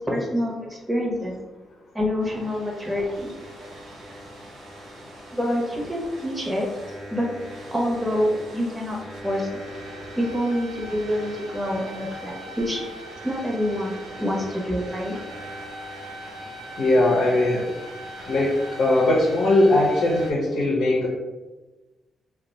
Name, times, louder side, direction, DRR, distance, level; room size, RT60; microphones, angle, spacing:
voice 1, 0.0-1.3 1.9-3.3 5.3-6.7 7.1-7.3 7.7-9.0 9.2-9.6 10.1-12.8 13.2-15.2, equal, 10° right, -3 dB, 1.0 m, -26 dB
sound 1, 2.2-20.3, equal, 70° right, 1.0 m, -40 dB
voice 2, 16.8-17.7 18.3-21.1, left 1 dB, 60° left, -3 dB, 0.7 m, -20 dB
2.5 x 2.3 x 4.0 m, 1.2 s
hypercardioid pair, 40°, 0 cm